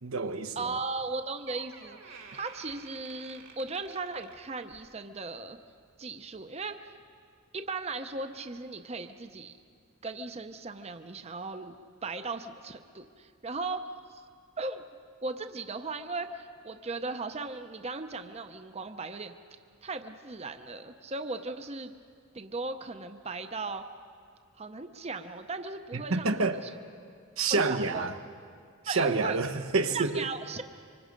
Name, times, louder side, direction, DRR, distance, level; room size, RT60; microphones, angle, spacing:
voice 1, 0.0-0.7 25.9-26.6 27.4-28.2 28.8-30.3, right 3 dB, 90° right, 7 dB, 1.1 m, -28 dB
voice 2, 0.6-5.6 6.0-6.8 7.5-9.5 10.0-11.8 12.0-14.2 14.6-14.9 15.2-19.3 19.8-21.9 22.3-23.9 24.6-26.7 27.5-28.0 28.9-29.4 29.9-30.6, right 3 dB, 30° right, 8 dB, 0.7 m, -37 dB
Door, 1.0-1.1 1.4-4.9 5.3-5.6 6.3-6.4, right 5 dB, 65° right, 2.0 m, -51 dB
25.5 x 25.0 x 5.2 m, 2.2 s
head